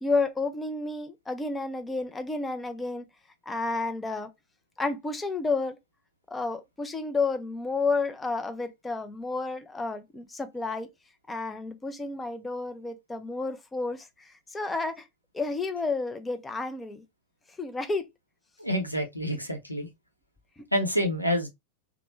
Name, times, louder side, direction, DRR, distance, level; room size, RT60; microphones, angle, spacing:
voice 1, 0.0-3.0 3.5-4.3 4.8-5.8 6.3-10.9 11.3-15.1 15.3-17.0 17.6-18.1 20.6-20.7, left 3 dB, 10° left, 0.4 m, -31 dB
voice 2, 18.6-19.9 20.7-21.5, equal, 90° left, 0.7 m, -27 dB
3.0 x 2.1 x 3.0 m
figure-of-eight pair, 90°, 0 cm